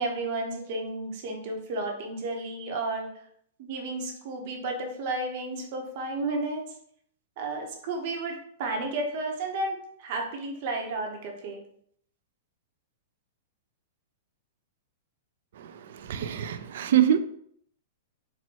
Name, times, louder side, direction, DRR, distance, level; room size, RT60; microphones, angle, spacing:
voice 1, 0.0-3.1 3.6-6.6 7.4-11.6, right 2 dB, 45° right, 0.8 m, -32 dB
voice 2, 15.6-17.2, right 10 dB, 65° right, 0.4 m, -25 dB
4.2 x 2.1 x 4.4 m
supercardioid pair, 160°, 0 cm